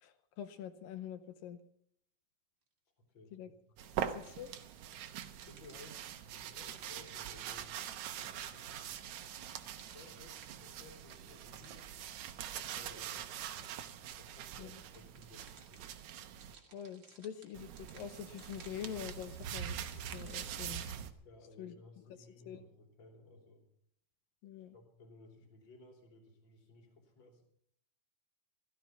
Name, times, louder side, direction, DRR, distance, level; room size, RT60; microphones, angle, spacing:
voice 1, 0.0-1.6 3.3-3.5 4.0-4.5 14.6-14.7 16.7-21.0 21.6-21.8 22.5-22.6 24.4-24.7, left 9 dB, 75° left, 10 dB, 2.3 m, -45 dB
voice 2, 3.0-4.0 5.0-9.0 9.6-12.2 12.5-13.7 14.2-15.8 21.2-23.6 24.6-27.4, left 2 dB, 30° left, 2 dB, 3.5 m, -59 dB
sound 1, 3.8-8.0 8.4-14.0 14.4-21.0, right 6 dB, 45° right, 1.9 m, -61 dB
sound 2, 3.8-16.5 17.5-21.1, right 9 dB, 80° right, 1.7 m, -44 dB
16.0 x 13.0 x 5.7 m, 0.69 s
omnidirectional pair, 4.6 m